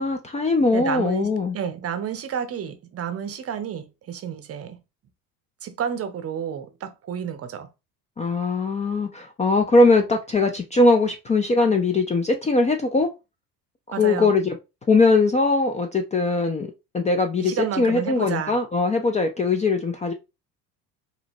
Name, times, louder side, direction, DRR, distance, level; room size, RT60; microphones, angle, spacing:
voice 1, 0.0-1.6 8.2-13.1 14.0-14.6 14.9-16.7 16.9-20.1, left 3 dB, 15° left, 0.5 m, -20 dB
voice 2, 0.7-4.8 5.6-7.7 13.9-14.3 17.4-18.6, right 8 dB, 30° right, 0.7 m, -31 dB
4.9 x 2.8 x 2.6 m
figure-of-eight pair, 60°, 48 cm